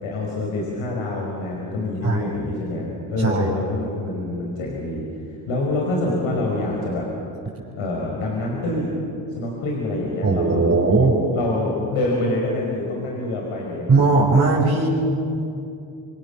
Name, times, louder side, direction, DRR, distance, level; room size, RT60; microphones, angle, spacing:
voice 1, 0.0-5.0 5.5-7.1 7.7-8.9 9.3-10.9 11.3-14.0, left 2 dB, 65° left, -1 dB, 5.3 m, -26 dB
voice 2, 3.2-3.5 10.2-11.2 13.9-14.9, right 3 dB, 30° right, -4 dB, 5.7 m, -18 dB
26.5 x 25.0 x 7.3 m, 2.7 s
hypercardioid pair, 55°, 50 cm